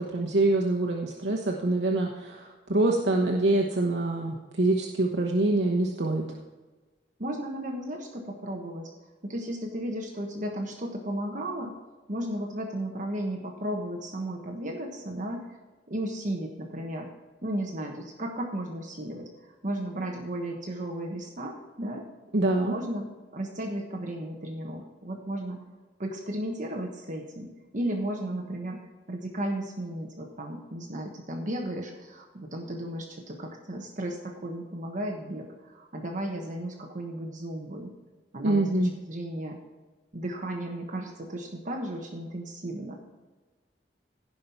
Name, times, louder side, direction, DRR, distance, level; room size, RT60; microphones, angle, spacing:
voice 1, 0.0-6.2 22.3-22.7 38.4-38.9, right 2 dB, 75° right, -1 dB, 1.1 m, -25 dB
voice 2, 7.2-8.9 9.2-11.7 12.1-15.4 15.9-17.1 17.4-22.0 22.6-23.1 23.3-25.6 26.0-28.8 29.1-37.9 38.3-39.6 40.1-43.0, right 1 dB, 45° right, 1 dB, 1.3 m, -34 dB
16.5 x 5.6 x 4.5 m, 1.2 s
head